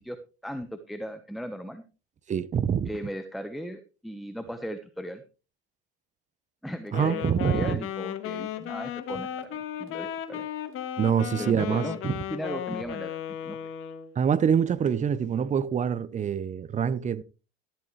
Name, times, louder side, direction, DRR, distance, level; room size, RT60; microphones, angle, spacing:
voice 1, 0.4-1.8 2.8-5.2 6.6-10.5 11.4-12.0 12.3-13.1 13.4-13.6, equal, ahead, 1.1 m, -37 dB
voice 2, 2.3-2.9 6.9-7.8 11.0-12.2 14.2-17.2, right 7 dB, 25° right, 0.8 m, -25 dB
Wind instrument woodwind instrument, 6.9-14.1, left 10 dB, 45° left, 1.7 m, -35 dB
13.5 x 12.5 x 3.2 m
hypercardioid pair, 90°, 30 cm